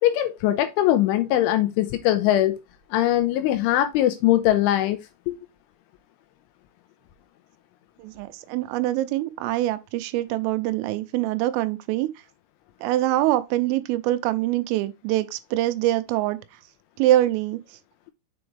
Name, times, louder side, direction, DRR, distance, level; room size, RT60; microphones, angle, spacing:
voice 1, 0.0-2.6 2.9-5.0 5.3-5.4, left 13 dB, 85° left, 2.8 m, -21 dB
voice 2, 8.0-12.1 12.8-16.4 17.0-17.6, right 15 dB, 85° right, 3.2 m, -24 dB
7.1 x 5.1 x 3.3 m
omnidirectional pair, 5.9 m